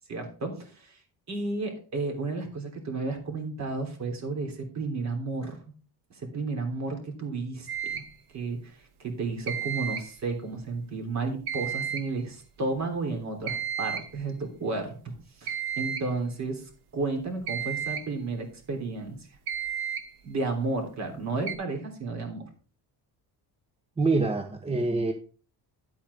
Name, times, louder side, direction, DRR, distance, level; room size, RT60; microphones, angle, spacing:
voice 1, 0.1-1.0 1.3-5.6 6.1-7.7 7.9-8.0 8.3-8.8 9.0-15.1 15.4-16.6 16.9-19.2 20.2-22.4, right 3 dB, 45° right, 3 dB, 3.2 m, -32 dB
sound 1, 7.7-8.2 9.5-10.2 11.5-12.2 13.5-14.2 15.5-16.2 17.5-18.1 19.5-20.2 21.5-21.6, right 8 dB, 75° right, 1.5 m, -32 dB
voice 2, 24.0-25.1, right 3 dB, 15° right, 5 dB, 0.8 m, -25 dB
10.5 x 8.4 x 3.4 m, 0.39 s
cardioid pair, 165°, 39 cm